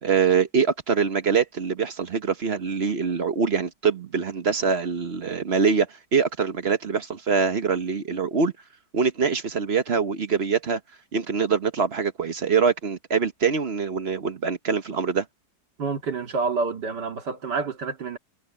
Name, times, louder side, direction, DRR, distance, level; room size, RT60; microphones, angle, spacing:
voice 1, 0.0-8.5 8.9-10.8 11.1-15.2, right 5 dB, 40° right, 1.1 m, -24 dB
voice 2, 15.8-18.2, right 4 dB, 65° right, 2.6 m, -28 dB
omnidirectional pair, 1.9 m